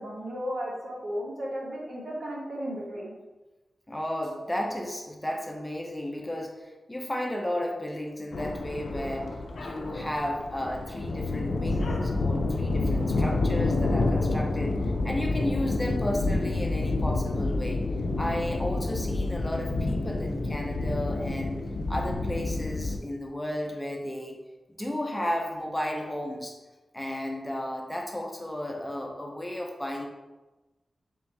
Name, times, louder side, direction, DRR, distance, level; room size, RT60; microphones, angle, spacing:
voice 1, 0.0-3.1, equal, 65° right, -3 dB, 1.1 m, -34 dB
voice 2, 3.9-17.8 18.2-21.6 21.9-24.4 24.8-26.5 26.9-30.1, left 1 dB, 10° left, 0 dB, 0.6 m, -33 dB
sound 1, 8.3-23.0, left 2 dB, 85° left, 0.4 m, -28 dB
3.6 x 2.6 x 4.5 m, 1.1 s
wide cardioid pair, 90°, 0 cm